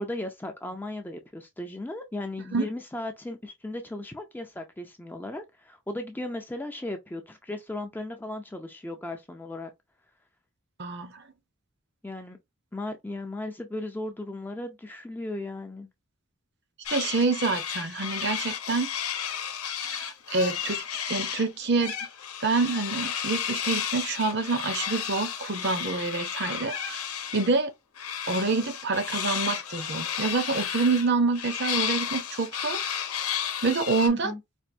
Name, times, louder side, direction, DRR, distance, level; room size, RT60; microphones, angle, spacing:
voice 1, 0.0-9.7 12.0-12.4 12.7-15.9 34.1-34.4, left 1 dB, 10° left, 0.4 m, -36 dB
voice 2, 10.8-11.2 16.9-18.9 19.8-20.8 21.1-21.9 22.4-27.0 27.3-27.7 28.3-32.8 33.6-34.3, right 3 dB, 50° right, 0.7 m, -27 dB
sound 1, 16.9-21.5 21.8-27.5 28.0-34.1, left 9 dB, 85° left, 0.8 m, -33 dB
4.3 x 2.5 x 2.6 m
head